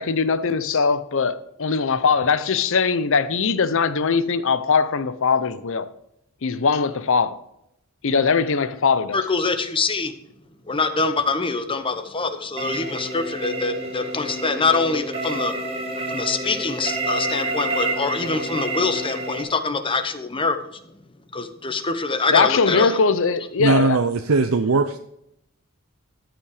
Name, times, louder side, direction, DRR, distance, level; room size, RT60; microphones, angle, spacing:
voice 1, 0.0-5.9 6.4-7.4 8.0-9.2 22.3-24.0, left 5 dB, 65° left, 0.7 m, -21 dB
voice 2, 9.1-10.1 10.7-15.5 16.1-20.6 21.3-22.9, left 3 dB, 25° left, 0.9 m, -24 dB
sound 1, 12.6-19.4, right 2 dB, 30° right, 2.3 m, -29 dB
voice 3, 23.6-25.0, right 4 dB, 90° right, 0.6 m, -19 dB
14.0 x 5.9 x 4.9 m
head